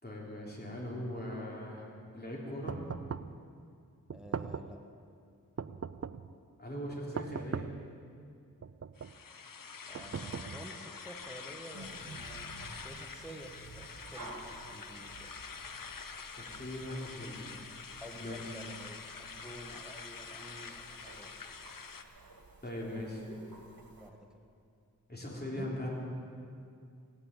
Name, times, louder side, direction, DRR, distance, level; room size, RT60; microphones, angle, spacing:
voice 1, 0.0-1.9 2.1-2.8 6.6-7.7 16.3-17.4 17.7-17.9 18.2-18.4 22.6-23.4 25.1-25.9, left 1 dB, 25° left, -3 dB, 3.4 m, -40 dB
sound 1, 2.7-3.4 4.1-4.8 5.6-6.3 7.2-7.9 8.6-9.2 9.9-10.8, right 6 dB, 45° right, 0.5 m, -40 dB
voice 2, 4.1-4.8 9.9-12.5 12.8-15.3 18.0-21.3 22.8-23.1 24.0-24.3 25.6-25.7, equal, ahead, 3 dB, 1.5 m, -50 dB
sound 2, 9.0-22.0, left 5 dB, 70° left, 0.8 m, -46 dB
sound 3, 11.7-24.1, right 2 dB, 75° right, 1.5 m, -53 dB
17.0 x 9.8 x 7.3 m, 2.3 s
wide cardioid pair, 45°, 35 cm